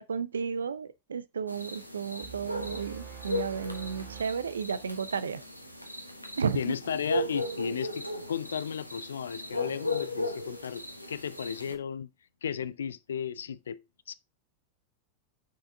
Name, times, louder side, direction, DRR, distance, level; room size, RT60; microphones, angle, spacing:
voice 1, 0.0-5.4 6.4-6.7, right 6 dB, 70° right, 0.5 m, -33 dB
sound 1, 1.5-11.8, left 1 dB, 90° right, 0.9 m, -37 dB
sound 2, 2.2-5.5, right 9 dB, 50° right, 1.3 m, -47 dB
voice 2, 6.5-10.8 11.1-12.1 12.4-13.8 14.1-14.2, left 7 dB, 65° left, 0.4 m, -34 dB
6.0 x 4.8 x 3.5 m
figure-of-eight pair, 90°, 0 cm